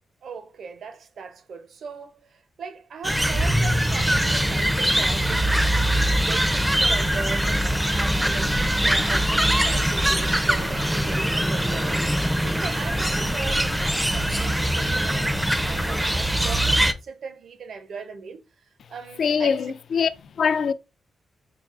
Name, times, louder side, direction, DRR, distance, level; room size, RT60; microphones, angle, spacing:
voice 1, 0.2-5.9 6.2-12.0 12.4-19.6, right 5 dB, 70° right, 0.6 m, -39 dB
sound 1, 3.0-16.9, equal, 5° right, 0.4 m, -22 dB
voice 2, 19.2-20.7, left 6 dB, 65° left, 0.3 m, -23 dB
5.7 x 2.4 x 2.4 m
cardioid pair, 115°, 0 cm